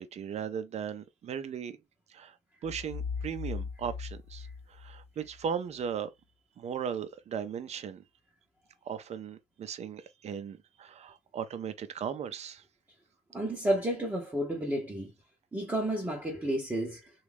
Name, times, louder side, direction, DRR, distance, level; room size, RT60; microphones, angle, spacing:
voice 1, 0.0-1.8 2.1-2.4 2.6-6.1 6.6-8.0 8.9-12.6, right 7 dB, 40° right, 0.6 m, -37 dB
sound 1, 2.6-5.5, left 5 dB, 35° left, 0.8 m, -39 dB
voice 2, 13.3-15.1 15.5-17.1, right 1 dB, 10° right, 0.8 m, -31 dB
3.0 x 2.3 x 3.4 m
cardioid pair, 110°, 17 cm